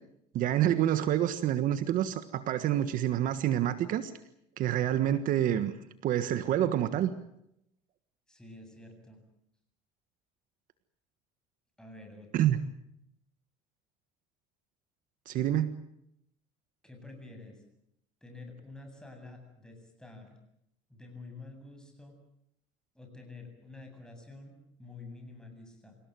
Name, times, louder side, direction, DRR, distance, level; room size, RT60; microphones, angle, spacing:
voice 1, 0.3-4.1 4.6-5.7 6.0-7.1 12.3-12.6 15.3-15.7, right 11 dB, 55° right, 11 dB, 1.5 m, -27 dB
voice 2, 8.3-9.2 11.8-12.5 16.8-17.6 18.2-20.4 20.9-22.2 22.9-26.0, left 3 dB, 5° left, 4 dB, 7.7 m, -49 dB
27.0 x 17.5 x 9.2 m, 0.77 s
cardioid pair, 120°, 16 cm